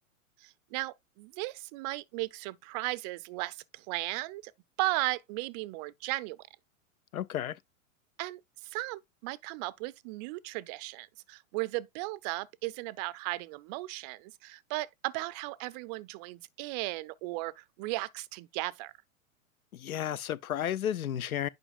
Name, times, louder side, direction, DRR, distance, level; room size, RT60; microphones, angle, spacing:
voice 1, 0.4-4.5 4.8-6.4 8.2-18.9, right 20 dB, 30° right, 0.4 m, -36 dB
voice 2, 7.1-7.6 19.7-21.5, left 10 dB, 85° left, 0.6 m, -32 dB
9.8 x 5.1 x 2.4 m
hypercardioid pair, 110°, 42 cm